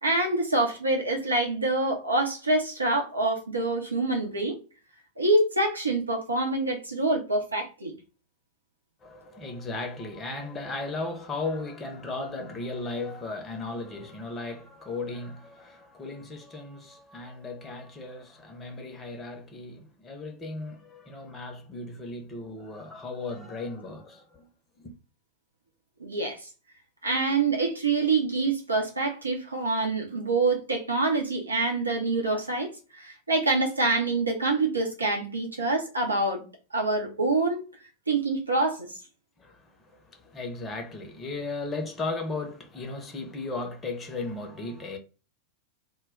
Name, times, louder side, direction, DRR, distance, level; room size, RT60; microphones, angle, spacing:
voice 1, 0.0-4.6 5.2-7.9 26.0-26.5 27.0-36.4 36.7-37.6 38.1-39.0, right 2 dB, 80° right, 0.6 m, -26 dB
voice 2, 9.0-24.5 24.8-24.9 39.4-45.0, left 3 dB, 20° left, 0.6 m, -36 dB
2.2 x 2.1 x 3.5 m
figure-of-eight pair, 90°, 0 cm